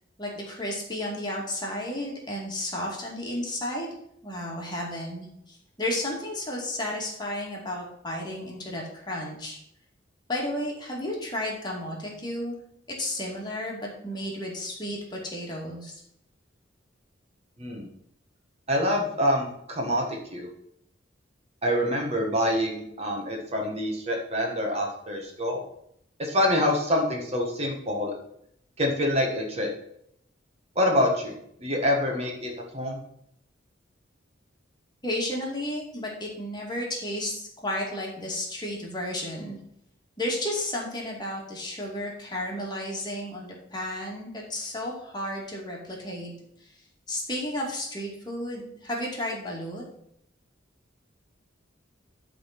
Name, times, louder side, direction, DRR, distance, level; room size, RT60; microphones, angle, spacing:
voice 1, 0.2-3.9 4.2-9.6 10.3-12.6 13.0-16.0 35.0-39.6 40.2-46.3 46.6-46.7 47.1-49.8, left 1 dB, 20° left, -2 dB, 2.2 m, -33 dB
voice 2, 18.7-20.0 20.3-20.5 21.6-25.6 26.2-28.1 28.8-29.7 30.7-31.3 31.6-33.0, left 1 dB, 35° right, 0 dB, 1.5 m, -26 dB
11.5 x 4.0 x 5.9 m, 0.72 s
head